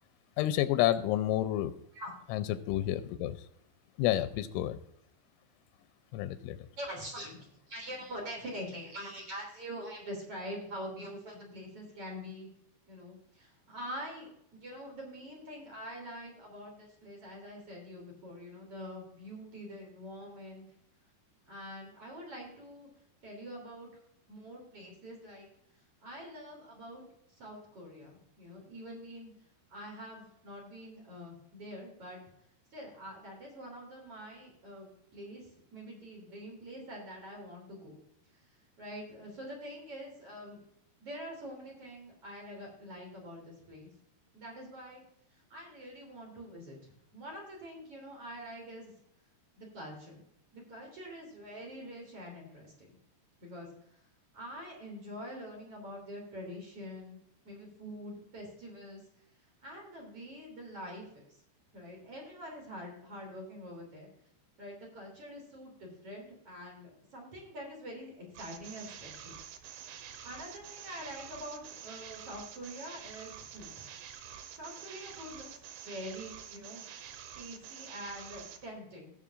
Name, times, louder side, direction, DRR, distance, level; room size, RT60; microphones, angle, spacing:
voice 1, 0.4-1.7 2.3-3.5 4.0-4.8 6.1-6.6, left 13 dB, 90° left, 11 dB, 3.0 m, -30 dB
voice 2, 6.8-12.5 12.9-14.3 14.6-20.6 21.5-22.9 23.2-23.9 24.3-25.5 26.0-27.0 27.3-29.3 29.7-32.2 32.7-38.0 38.8-40.6 41.0-43.9 44.3-45.0 45.3-48.9 49.5-50.2 50.5-52.9 53.4-54.0 54.3-57.2 57.4-59.0 59.6-61.4 61.7-64.1 64.6-69.4 70.2-73.7 74.6-75.5 75.8-76.8 77.3-79.1, equal, 35° right, 0 dB, 3.5 m, -45 dB
sound 1, 68.4-78.7, right 9 dB, 85° right, 3.5 m, -48 dB
18.0 x 7.4 x 2.5 m, 0.72 s
omnidirectional pair, 5.4 m